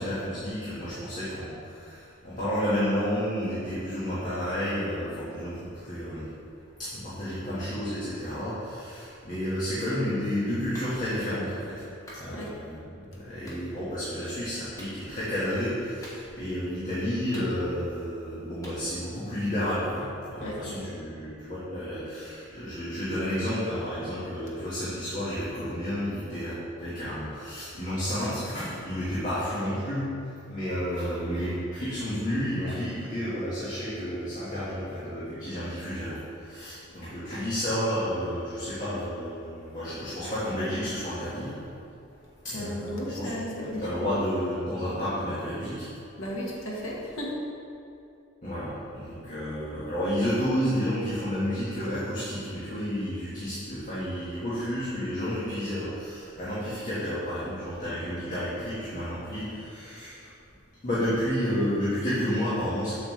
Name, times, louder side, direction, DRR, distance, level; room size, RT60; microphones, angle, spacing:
voice 1, 0.0-6.3 6.8-11.9 12.1-41.5 42.4-43.3 43.8-45.9 48.4-60.3 60.8-62.9, equal, 40° left, -11 dB, 1.7 m, -31 dB
Clapping, 10.7-10.9 12.1-12.3 13.5-13.6 14.8-15.0 16.0-16.5 17.3-17.9 18.6-18.8, equal, 15° left, 1.3 m, -46 dB
voice 2, 20.4-20.9 42.5-44.1 46.2-47.3, left 1 dB, 80° left, -3 dB, 1.5 m, -35 dB
7.5 x 7.2 x 3.3 m, 2.6 s
head